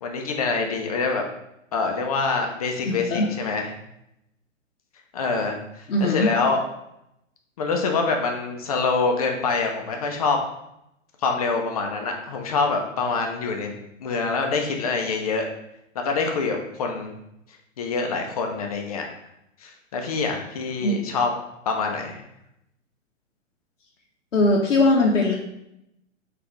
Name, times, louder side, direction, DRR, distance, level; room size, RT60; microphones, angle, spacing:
voice 1, 0.0-1.2 1.7-3.7 5.1-6.6 7.6-10.4 11.2-13.7 14.0-15.4 16.0-17.1 17.8-19.0 19.6-21.3 21.7-22.2, left 4 dB, 30° left, 3 dB, 0.4 m, -25 dB
voice 2, 2.8-3.3 5.9-6.3 20.8-21.0 24.3-25.3, left 2 dB, 75° left, -1 dB, 0.7 m, -20 dB
4.1 x 2.4 x 3.0 m, 0.82 s
figure-of-eight pair, 120°, 38 cm